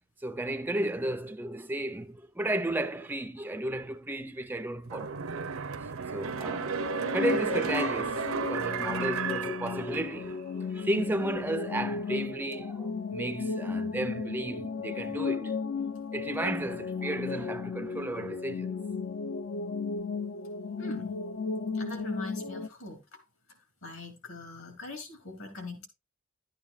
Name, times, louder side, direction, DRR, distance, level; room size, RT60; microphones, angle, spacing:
voice 1, 0.2-5.4 5.8-6.8 7.1-15.5 16.1-18.8, right 1 dB, 10° right, 0.4 m, -33 dB
sound 1, 4.9-10.4 10.8-10.9, right 6 dB, 80° right, 0.7 m, -33 dB
sound 2, 6.4-22.7, left 5 dB, 50° left, 0.5 m, -35 dB
voice 2, 20.8-21.1 21.7-23.0 23.8-25.9, left 2 dB, 65° left, 3.3 m, -41 dB
12.0 x 9.0 x 2.3 m
head